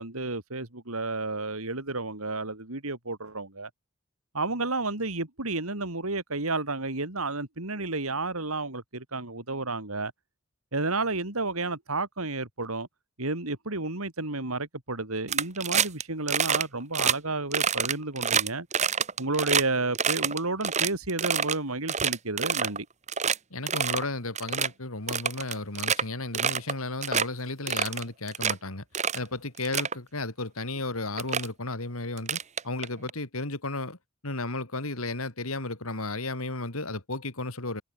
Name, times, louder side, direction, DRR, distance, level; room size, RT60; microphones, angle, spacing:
voice 1, 0.0-3.7 4.3-10.1 10.7-12.9 13.2-18.7 19.2-22.9, right 3 dB, 90° right, 4.1 m, -31 dB
sound 1, 15.3-16.0 16.3-16.6 16.9-17.1 17.5-19.6 19.9-21.5 21.9-22.8 23.1-23.4 23.7-24.0 24.3-24.7 25.1-26.0 26.3-26.7 27.0-27.3 27.7-28.5 28.9-29.2 29.6-29.9 30.8-30.9 31.2-31.5 32.2-33.1, right 7 dB, 35° right, 2.2 m, -26 dB
voice 2, 23.5-28.8 29.1-34.0 34.2-37.8, left 2 dB, 85° left, 4.1 m, -34 dB
head